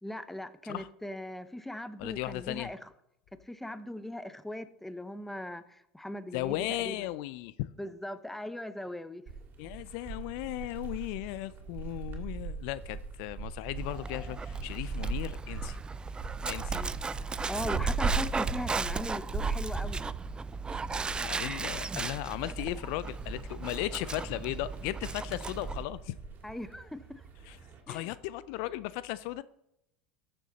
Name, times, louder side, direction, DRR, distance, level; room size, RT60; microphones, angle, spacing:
voice 1, 0.0-2.9 3.5-7.1 7.8-9.2 16.7-16.9 17.5-20.0 26.4-27.2 27.9-28.1, left 1 dB, 5° left, 13 dB, 0.8 m, -39 dB
voice 2, 2.0-2.7 6.3-7.7 9.6-15.8 16.5-16.8 21.2-26.2 27.5-27.6 27.9-29.4, left 16 dB, 65° left, 17 dB, 0.4 m, -36 dB
sound 1, 9.3-27.8, right 4 dB, 40° right, 2.8 m, -38 dB
Dog, 13.8-25.8, right 4 dB, 15° right, 0.4 m, -37 dB
13.5 x 6.8 x 4.1 m, 0.80 s
hypercardioid pair, 85°, 5 cm